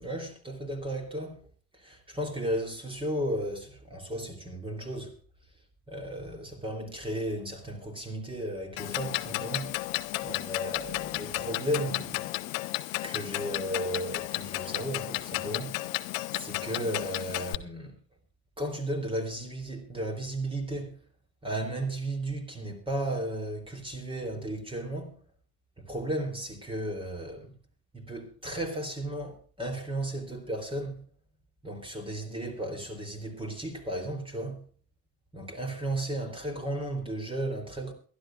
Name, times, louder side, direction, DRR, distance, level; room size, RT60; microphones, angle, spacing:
voice 1, 0.0-1.4 1.7-5.1 5.9-9.7 10.2-12.6 13.0-15.9 16.3-17.9 18.6-21.0 21.4-25.1 25.8-27.5 27.9-31.0 31.6-34.6 35.3-37.9, right 1 dB, 10° right, 3.4 m, -34 dB
Clock, 8.8-17.6, left 19 dB, 60° left, 0.8 m, -33 dB
23.0 x 12.0 x 2.5 m
figure-of-eight pair, 60°, 46 cm